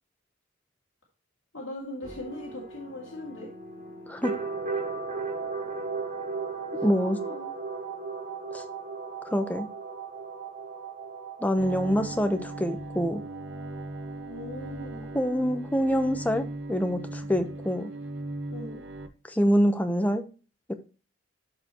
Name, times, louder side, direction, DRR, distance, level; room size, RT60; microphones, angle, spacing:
voice 1, 1.5-3.5 6.9-7.5 14.3-15.1 18.5-18.8, left 1 dB, 80° left, -3 dB, 2.4 m, -39 dB
sound 1, 2.0-15.6, right 4 dB, 40° right, 2.5 m, -37 dB
voice 2, 6.8-7.2 8.5-8.6 9.2-9.7 11.4-13.2 15.1-17.9 19.3-20.2 20.7-20.8, equal, 10° left, 7 dB, 0.8 m, -25 dB
Bowed string instrument, 11.6-19.1, right 1 dB, 80° right, 1.4 m, -38 dB
12.5 x 4.8 x 3.0 m, 0.34 s
head